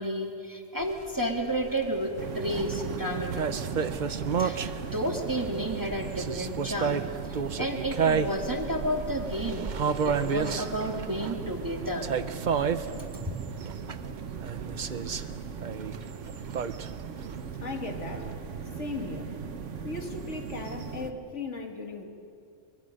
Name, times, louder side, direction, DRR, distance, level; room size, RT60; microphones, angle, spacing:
voice 1, 0.0-3.7 4.4-7.0 7.3-9.7 10.0-12.1 13.1-13.4, equal, 15° right, 2 dB, 1.8 m, -32 dB
sound 1, 0.8-18.3, right 6 dB, 45° right, 0.8 m, -32 dB
sound 2, 2.2-21.1, right 6 dB, 80° right, 1.4 m, -38 dB
voice 2, 17.6-18.3 18.6-19.4 19.8-22.0, left 3 dB, 75° left, 3 dB, 2.5 m, -37 dB
23.5 x 22.5 x 6.5 m, 2.5 s
omnidirectional pair, 1.2 m